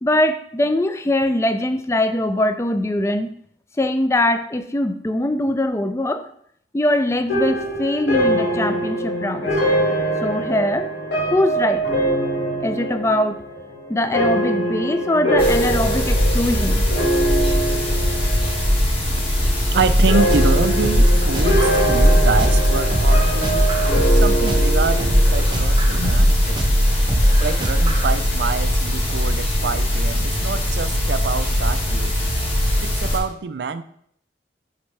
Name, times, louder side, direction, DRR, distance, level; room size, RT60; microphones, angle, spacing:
voice 1, 0.0-3.3 3.8-6.3 6.7-9.6 10.2-10.9 11.3-11.9 12.6-13.4 13.9-16.9, left 1 dB, 15° left, 9 dB, 0.3 m, -22 dB
sound 1, 7.3-18.7 19.0-19.6 20.1-25.4, right 1 dB, 75° left, 2.2 m, -23 dB
sound 2, 15.4-33.2, equal, 30° left, 1.3 m, -21 dB
voice 2, 19.4-23.7 24.1-26.6 27.4-32.2 32.8-33.8, right 5 dB, 70° right, 11 dB, 0.4 m, -26 dB
sound 3, 19.8-28.1, equal, 25° right, 0.7 m, -19 dB
9.4 x 3.4 x 3.3 m, 0.66 s
head